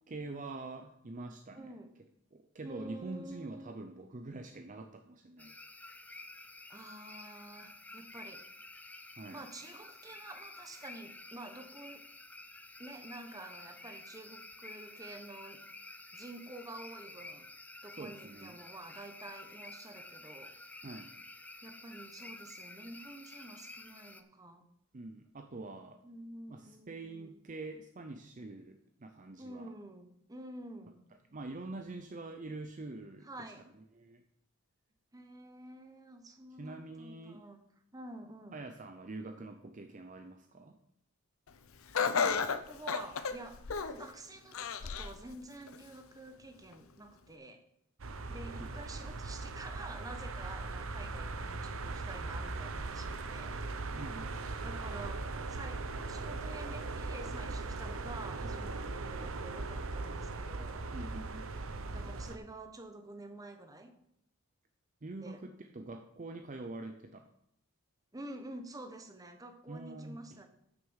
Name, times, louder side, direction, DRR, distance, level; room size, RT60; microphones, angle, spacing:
voice 1, 0.1-1.8 2.3-5.6 9.1-9.4 17.9-18.6 20.8-21.1 24.9-26.0 26.5-29.7 31.3-34.2 36.6-37.4 38.5-40.8 48.6-48.7 54.0-54.3 60.9-61.5 65.0-67.3 69.7-70.4, right 2 dB, 35° right, 6 dB, 0.6 m, -45 dB
voice 2, 1.5-1.9 2.6-3.7 6.7-8.5 9.3-12.0 12.8-15.6 16.1-17.5 17.8-20.8 21.6-24.7 26.0-27.4 29.4-31.0 33.2-33.7 35.1-37.6 37.9-38.6 42.3-47.6 48.3-53.6 54.6-60.9 61.9-63.9 65.2-65.4 68.1-70.5, right 2 dB, 15° right, 6 dB, 1.0 m, -49 dB
sound 1, 5.4-24.2, left 2 dB, 5° left, 0.5 m, -51 dB
Laughter, 41.9-44.1 44.5-45.2 45.7-45.8 46.7-46.8, left 5 dB, 70° left, 0.6 m, -32 dB
sound 2, 48.0-62.4, right 3 dB, 65° right, 0.8 m, -39 dB
9.0 x 6.5 x 6.4 m, 0.76 s
head